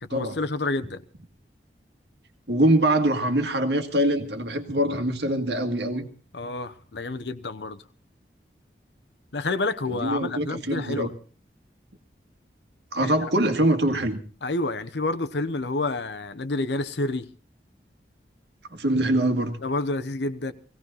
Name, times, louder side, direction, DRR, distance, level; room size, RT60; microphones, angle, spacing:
voice 1, 0.0-1.0 6.3-7.8 9.3-11.1 13.0-13.2 14.4-17.3 19.6-20.5, left 2 dB, 80° left, 0.9 m, -29 dB
voice 2, 2.5-6.1 9.9-11.1 12.9-14.2 18.7-19.6, right 1 dB, 75° right, 1.9 m, -23 dB
18.5 x 16.5 x 4.0 m
head